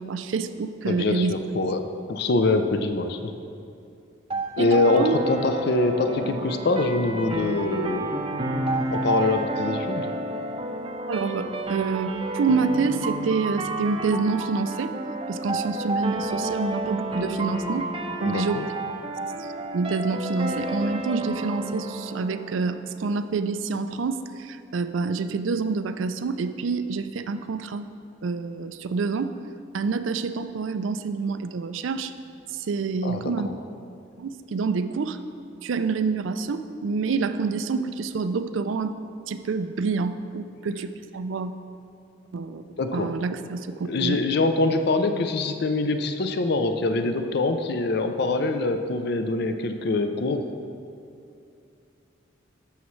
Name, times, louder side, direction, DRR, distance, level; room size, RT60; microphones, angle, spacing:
voice 1, 0.0-1.3 4.6-5.1 11.1-14.9 15.3-17.9 18.2-18.6 19.4-19.5 19.7-27.9 28.2-29.4 29.7-32.1 32.5-33.5 34.2-35.2 35.6-39.0 39.3-41.5 42.3-42.6 42.9-44.2, right 4 dB, 75° right, 11 dB, 0.4 m, -27 dB
voice 2, 0.9-1.8 2.1-3.2 4.6-8.1 8.9-10.1 18.2-18.7 33.0-33.5 42.8-43.1 43.8-50.4, left 2 dB, 55° left, 7 dB, 0.5 m, -24 dB
sound 1, 4.3-23.3, right 1 dB, 25° right, 0.5 m, -30 dB
11.5 x 7.1 x 3.2 m, 2.6 s
head